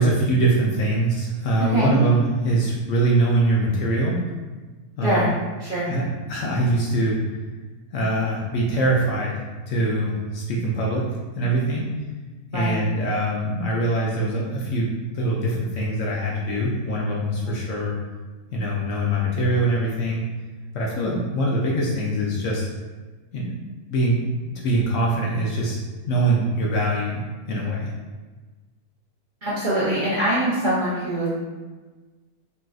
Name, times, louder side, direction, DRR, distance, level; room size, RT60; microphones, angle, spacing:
voice 1, 0.0-4.2 5.0-5.3 5.9-7.2 7.9-11.1 11.4-11.9 12.5-17.9 18.5-20.2 20.7-22.7 23.3-23.5 23.9-24.2 24.5-25.8 26.1-27.2 27.5-27.9, right 1 dB, 70° left, -3 dB, 0.8 m, -23 dB
voice 2, 5.0-5.3 5.6-5.9 12.5-12.8 17.4-17.6 29.4-31.3, right 1 dB, 45° right, -10 dB, 0.6 m, -23 dB
3.9 x 2.4 x 2.3 m, 1.3 s
omnidirectional pair, 1.6 m